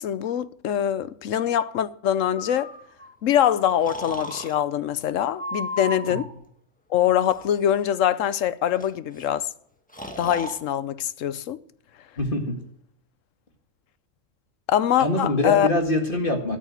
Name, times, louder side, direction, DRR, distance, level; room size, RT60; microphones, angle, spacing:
voice 1, 0.0-2.7 3.2-6.3 6.9-9.5 10.2-11.6 14.7-15.7, left 10 dB, 75° left, 1.0 m, -23 dB
Breathing, 2.4-3.1 3.9-4.5 5.4-6.3 7.2-7.6 8.8-8.9 9.1-9.3 9.9-10.6, left 1 dB, 5° left, 1.4 m, -34 dB
voice 2, 12.2-12.6 15.0-16.6, left 1 dB, 40° left, 2.1 m, -24 dB
13.5 x 6.6 x 9.3 m
omnidirectional pair, 1.4 m